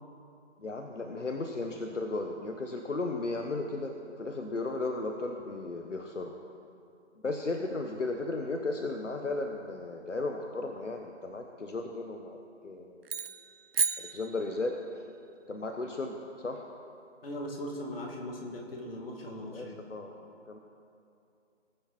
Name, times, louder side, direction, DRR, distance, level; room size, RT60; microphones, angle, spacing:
voice 1, 0.6-6.3 7.2-12.4 12.6-13.1 14.0-14.8 15.5-16.7 19.5-20.2 20.5-20.6, left 2 dB, 80° left, 4 dB, 1.1 m, -35 dB
sound 1, 13.0-15.0, right 6 dB, 55° right, 0.7 m, -33 dB
voice 2, 17.2-19.8, left 1 dB, 50° left, 0 dB, 2.5 m, -39 dB
20.0 x 7.0 x 4.4 m, 2.6 s
figure-of-eight pair, 150°, 36 cm